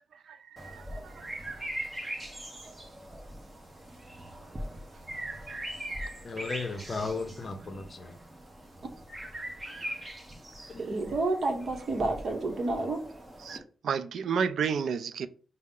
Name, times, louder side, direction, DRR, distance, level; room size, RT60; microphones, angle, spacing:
sound 1, 0.6-13.6, right 1 dB, 20° right, 0.8 m, -41 dB
voice 1, 6.2-8.2 10.7-10.8, left 3 dB, 40° left, 0.6 m, -35 dB
voice 2, 10.8-13.0, right 2 dB, 50° right, 0.9 m, -29 dB
voice 3, 13.8-15.3, right 6 dB, 80° right, 0.3 m, -30 dB
5.3 x 2.0 x 3.6 m
wide cardioid pair, 135°, 0 cm